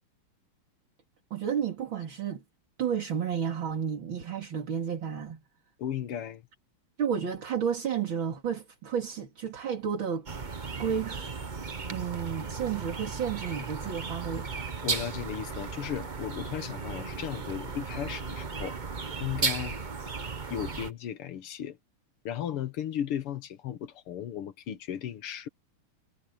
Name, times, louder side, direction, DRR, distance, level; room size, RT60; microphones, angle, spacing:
voice 1, 1.3-2.4 2.8-5.4 7.0-10.3 10.8-11.3 11.9-14.5, right 7 dB, 65° right, 3.2 m, -31 dB
voice 2, 5.8-6.4 14.8-18.8 19.2-19.8 20.5-21.8 22.3-25.5, left 10 dB, 90° left, 2.2 m, -35 dB
sound 1, 10.3-20.9, right 4 dB, 30° right, 0.9 m, -35 dB
omnidirectional pair, 2.4 m